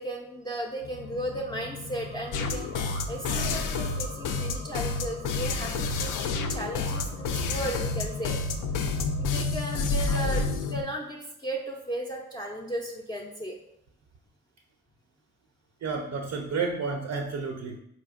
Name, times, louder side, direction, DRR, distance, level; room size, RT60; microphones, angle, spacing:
voice 1, 0.0-8.4 9.2-13.6, right 1 dB, 10° left, -2 dB, 0.6 m, -35 dB
sound 1, 0.8-10.8, left 4 dB, 90° left, 0.8 m, -37 dB
sound 2, 2.3-10.7, left 3 dB, 60° left, 0.5 m, -29 dB
voice 2, 15.8-17.8, right 4 dB, 45° right, 3 dB, 0.5 m, -31 dB
4.1 x 2.5 x 2.5 m, 0.76 s
hypercardioid pair, 45°, 36 cm